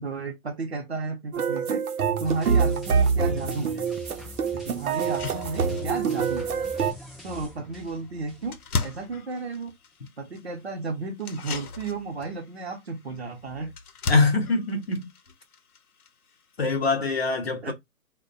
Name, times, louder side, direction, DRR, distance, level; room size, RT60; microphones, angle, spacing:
voice 1, 0.0-1.8 2.2-3.9 4.5-6.6 7.2-9.7 10.2-13.7 17.6-17.7, right 4 dB, 50° right, 0.7 m, -33 dB
sound 1, 1.3-6.9, right 6 dB, 85° right, 0.6 m, -25 dB
sound 2, 2.2-9.1 9.4-9.5, left 1 dB, ahead, 0.3 m, -44 dB
sound 3, 3.9-4.0 4.5-4.6 4.9-16.6, left 4 dB, 85° left, 0.7 m, -38 dB
voice 2, 14.1-15.1 16.6-17.7, left 3 dB, 45° left, 0.7 m, -23 dB
2.5 x 2.1 x 2.5 m
hypercardioid pair, 160°, 43 cm